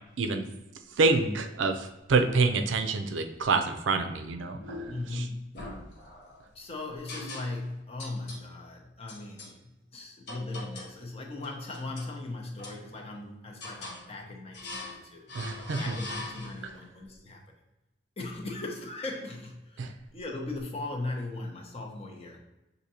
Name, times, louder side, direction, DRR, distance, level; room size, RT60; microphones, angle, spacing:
voice 1, 0.2-0.5 1.0-4.6 5.1-5.3 15.3-16.0 19.8-19.9, right 3 dB, 80° right, 7 dB, 0.5 m, -27 dB
sound 1, 4.6-5.1 5.5-6.4 7.1-7.7 8.0-8.5 9.1-9.5 10.3-11.0 11.4-12.1 12.6-13.2 13.6-14.1 14.5-15.0 15.3-16.8, left 2 dB, 60° left, 0.9 m, -42 dB
voice 2, 4.9-5.5 6.5-9.6 9.9-17.4 18.2-22.4, left 2 dB, 35° left, 1 dB, 0.7 m, -38 dB
6.4 x 2.7 x 2.7 m, 1.0 s
head